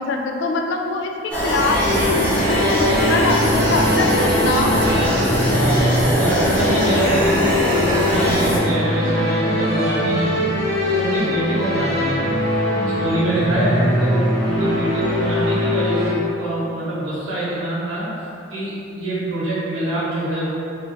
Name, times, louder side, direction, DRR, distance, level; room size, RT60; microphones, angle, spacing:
voice 1, 0.0-2.2 2.4-5.1, left 3 dB, 70° left, 2 dB, 0.3 m, -24 dB
sound 1, 1.3-8.6, equal, 10° left, 0.8 m, -21 dB
sound 2, 1.8-16.1, left 1 dB, 50° left, 1.5 m, -21 dB
voice 2, 5.5-10.5 10.8-12.4 12.8-18.1 18.5-20.5, right 1 dB, 90° right, -8 dB, 1.0 m, -25 dB
3.5 x 2.5 x 2.6 m, 2.5 s
head